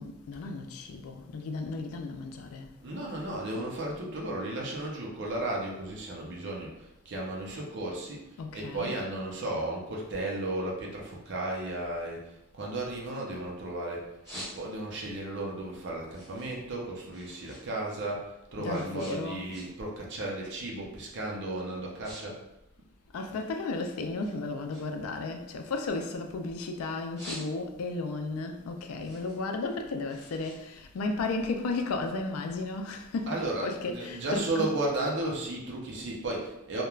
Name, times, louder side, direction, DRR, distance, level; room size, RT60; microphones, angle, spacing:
voice 1, 0.0-2.7 3.1-3.2 8.4-9.0 18.6-19.5 23.1-34.9, left 3 dB, 85° left, 0.3 m, -34 dB
voice 2, 2.8-14.1 14.3-22.4 33.3-36.8, right 2 dB, 55° right, 0.5 m, -34 dB
sound 1, 14.2-15.0 15.5-17.7 17.9-20.0 20.3-20.6 21.2-21.4 21.7-22.2 22.5-23.7 24.2-26.5 26.9-28.0 28.4-31.5, equal, 15° left, 1.2 m, -47 dB
3.1 x 2.1 x 2.3 m
head